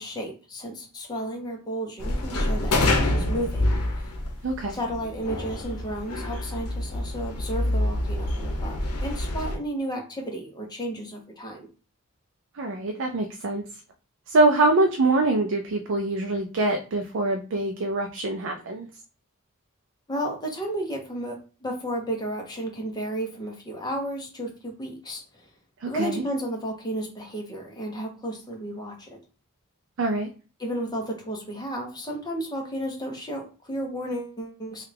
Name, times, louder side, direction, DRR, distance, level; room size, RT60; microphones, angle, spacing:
voice 1, 0.0-4.1 4.7-11.7 20.1-25.4 25.9-29.2 30.6-34.8, right 1 dB, 20° left, 1 dB, 0.8 m, -33 dB
sound 1, 2.0-9.6, left 1 dB, 85° left, 0.7 m, -27 dB
voice 2, 4.4-4.8 12.6-13.6 14.3-18.9 25.8-26.2 30.0-30.3, right 2 dB, 60° right, 4 dB, 0.4 m, -24 dB
3.2 x 2.3 x 3.3 m, 0.35 s
head